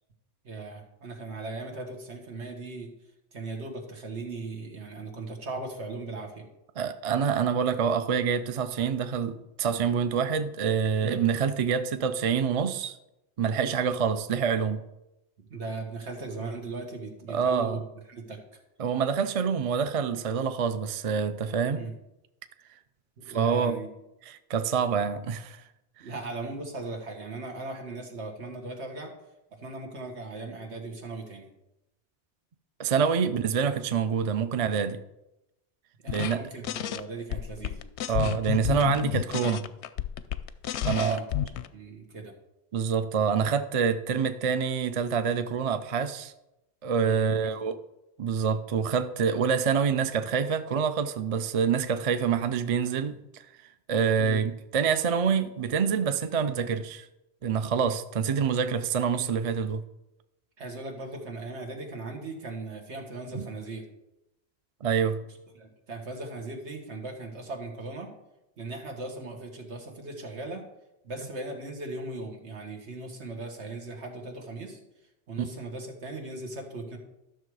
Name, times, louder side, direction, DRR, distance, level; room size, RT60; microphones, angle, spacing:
voice 1, 0.4-2.9 3.3-6.5 11.0-11.2 15.5-17.8 18.1-18.4 21.7-21.9 23.2-23.9 26.0-29.1 29.5-31.5 36.0-37.8 40.9-41.3 41.7-42.3 47.1-47.5 54.2-54.4 60.6-63.9 65.6-68.1 68.6-70.6 71.0-74.8 75.3-77.0, right 3 dB, 85° right, 1.9 m, -38 dB
voice 2, 6.8-13.0 13.4-14.8 17.3-17.8 18.8-21.8 23.3-23.8 24.3-25.6 32.8-35.0 36.1-36.4 38.1-39.7 40.8-41.2 42.7-46.3 46.8-47.8 48.2-53.2 53.9-57.1 57.4-59.8 63.3-63.5 64.8-65.2 75.4-75.5, right 6 dB, 45° right, 0.5 m, -26 dB
sound 1, 36.1-36.4 36.6-37.0 37.3-41.7, left 11 dB, 90° left, 0.9 m, -31 dB
12.5 x 6.5 x 4.8 m
omnidirectional pair, 1.1 m